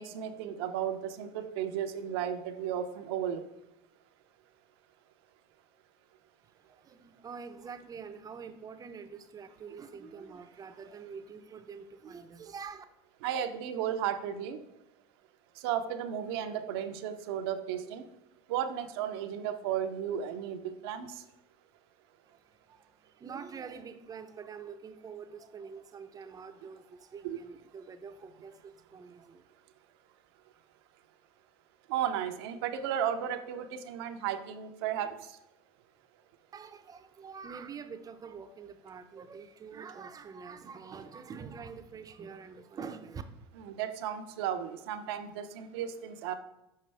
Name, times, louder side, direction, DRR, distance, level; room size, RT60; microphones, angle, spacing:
voice 1, 0.0-3.4 13.2-14.6 15.6-18.0 18.5-21.2 27.2-27.4 31.9-35.3 43.6-46.3, right 9 dB, 75° right, 0.7 m, -34 dB
voice 2, 6.4-12.8 22.3-29.5 36.5-43.2, right 6 dB, 30° right, 0.6 m, -46 dB
6.5 x 5.2 x 3.3 m
hypercardioid pair, 95°, 13 cm